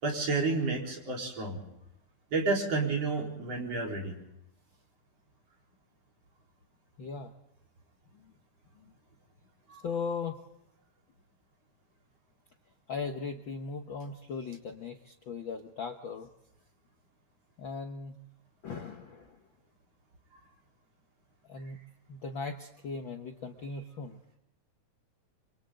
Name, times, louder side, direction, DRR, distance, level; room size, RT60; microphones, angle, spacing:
voice 1, 0.0-1.6 2.3-4.2 9.7-9.8, right 3 dB, 50° right, 0 dB, 5.2 m, -30 dB
voice 2, 7.0-7.3 9.8-10.4 12.9-16.3 17.6-18.2 18.6-19.3 21.5-21.8 22.1-24.2, left 4 dB, 60° left, 5 dB, 1.4 m, -38 dB
27.5 x 26.0 x 3.9 m, 0.85 s
omnidirectional pair, 3.6 m